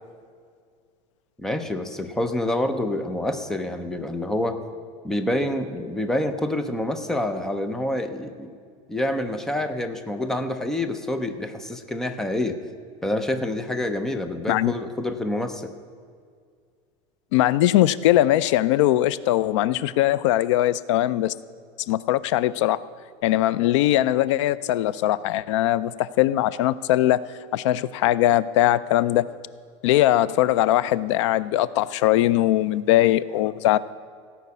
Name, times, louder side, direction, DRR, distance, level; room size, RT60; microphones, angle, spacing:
voice 1, 1.4-4.6 5.0-8.5 8.9-12.6 13.0-15.7, left 1 dB, 5° left, 8 dB, 0.5 m, -27 dB
voice 2, 17.3-21.3 21.9-22.8 23.2-27.3 27.5-29.3 29.8-33.8, left 14 dB, 90° left, 18 dB, 0.5 m, -20 dB
16.0 x 5.8 x 8.4 m, 2.1 s
supercardioid pair, 175°, 15 cm